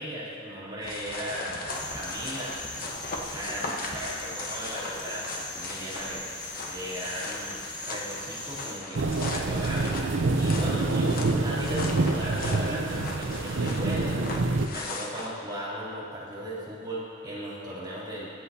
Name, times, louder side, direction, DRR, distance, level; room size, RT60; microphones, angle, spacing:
voice 1, 0.0-1.6 1.9-2.5 3.3-6.2 6.7-10.0 10.3-14.2 14.7-18.3, equal, 20° right, -8 dB, 3.1 m, -36 dB
sound 1, 0.8-15.3, left 2 dB, 50° left, 1.1 m, -38 dB
sound 2, 1.7-8.8, left 1 dB, 20° left, 1.5 m, -40 dB
sound 3, 8.9-14.7, right 3 dB, 85° right, 0.6 m, -26 dB
23.5 x 8.0 x 2.8 m, 2.5 s
head